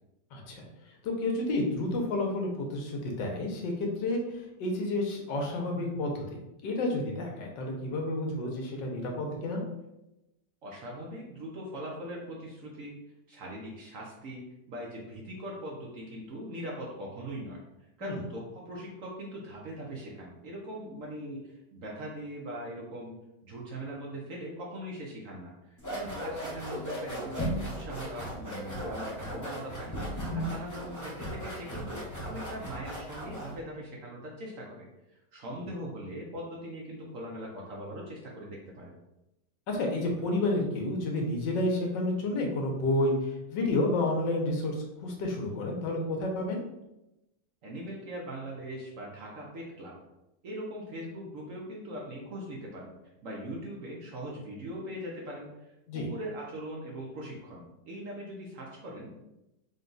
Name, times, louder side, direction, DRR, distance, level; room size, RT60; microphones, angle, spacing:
voice 1, 0.3-0.6 1.0-6.4 6.6-9.6 18.0-18.2 39.7-46.6 55.9-56.1, left 2 dB, 85° left, 1 dB, 1.5 m, -30 dB
voice 2, 10.6-12.9 13.3-17.6 18.0-23.1 23.4-34.9 35.1-38.9 47.6-49.9 50.4-52.9 53.2-59.1, equal, 60° right, -2 dB, 0.9 m, -41 dB
sound 1, 25.8-33.6, equal, 25° left, 0.4 m, -37 dB
3.9 x 2.3 x 3.8 m, 0.91 s
omnidirectional pair, 1.9 m